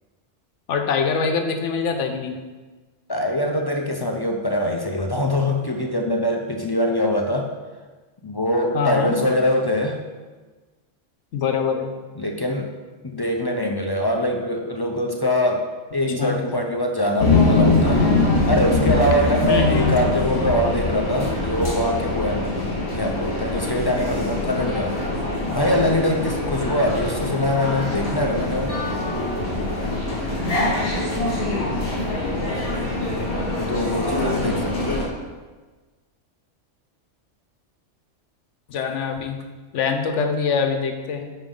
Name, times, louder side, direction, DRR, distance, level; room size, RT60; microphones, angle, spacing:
voice 1, 0.7-2.3 8.7-9.2 11.3-11.9 16.2-16.4 19.5-20.0 38.7-39.4 39.7-41.3, left 5 dB, 80° left, 5 dB, 1.1 m, -24 dB
voice 2, 3.1-7.5 8.2-10.0 12.2-12.7 13.0-15.7 15.9-18.2 18.5-25.0 25.5-28.7 33.7-35.1, left 1 dB, 30° left, 2 dB, 0.4 m, -23 dB
sound 1, 17.2-35.1, left 2 dB, 50° left, 1.8 m, -23 dB
9.0 x 5.2 x 3.7 m, 1.3 s
omnidirectional pair, 1.2 m